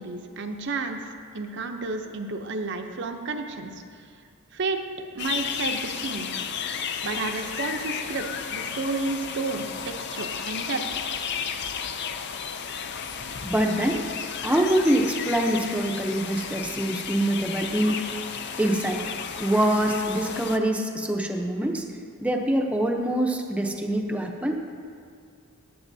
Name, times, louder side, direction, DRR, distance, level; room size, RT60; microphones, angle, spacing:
voice 1, 0.0-4.1 4.5-4.8 5.1-6.3 7.0-10.8, right 3 dB, 55° right, 5 dB, 0.7 m, -31 dB
sound 1, 5.2-20.6, left 7 dB, 50° left, 0.5 m, -33 dB
voice 2, 13.4-14.0 14.4-18.0 18.6-19.0 19.4-21.8 22.2-24.6, right 1 dB, 5° right, 1 dB, 0.7 m, -24 dB
14.5 x 9.9 x 2.7 m, 2.2 s
head